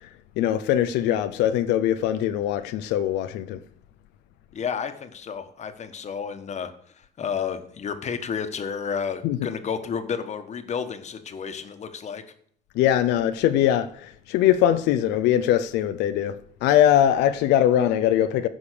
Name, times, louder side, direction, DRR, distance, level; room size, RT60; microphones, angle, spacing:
voice 1, 0.4-3.6 9.2-9.4 12.8-18.5, left 11 dB, 90° left, 0.6 m, -21 dB
voice 2, 4.5-12.2, left 6 dB, 40° left, 1.4 m, -31 dB
14.5 x 5.2 x 6.8 m
cardioid pair, 110°, 17 cm